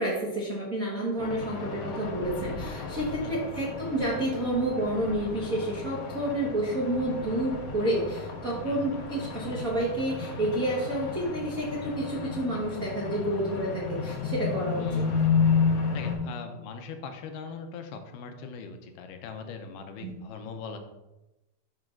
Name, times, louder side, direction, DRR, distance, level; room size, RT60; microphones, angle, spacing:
voice 1, 0.0-14.8 20.0-20.1, right 1 dB, 65° right, -5 dB, 0.8 m, -29 dB
sound 1, 1.2-16.2, left 5 dB, 65° left, 1.7 m, -32 dB
voice 2, 14.8-15.1 15.9-20.8, left 5 dB, 85° left, 6 dB, 2.3 m, -40 dB
10.5 x 5.6 x 2.5 m, 1.0 s
omnidirectional pair, 3.7 m